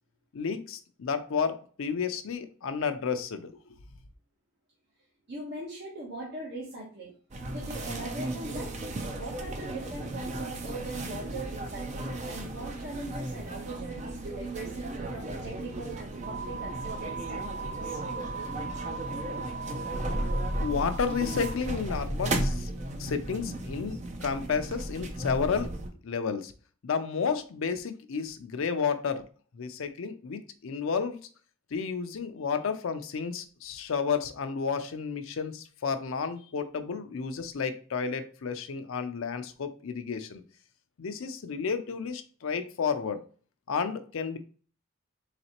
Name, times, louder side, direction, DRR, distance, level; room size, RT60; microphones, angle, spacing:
voice 1, 0.3-3.6 20.6-22.7 23.0-25.7 26.0-26.5 26.8-29.2 29.5-31.2 31.7-40.4 41.0-43.2 43.7-44.4, left 6 dB, 70° left, 9 dB, 0.4 m, -31 dB
voice 2, 5.3-7.1 7.5-8.7 9.1-18.0, right 2 dB, 50° right, -5 dB, 0.9 m, -40 dB
sound 1, 7.3-25.9, right 2 dB, 30° right, 0.5 m, -35 dB
4.1 x 3.2 x 2.9 m, 0.42 s
head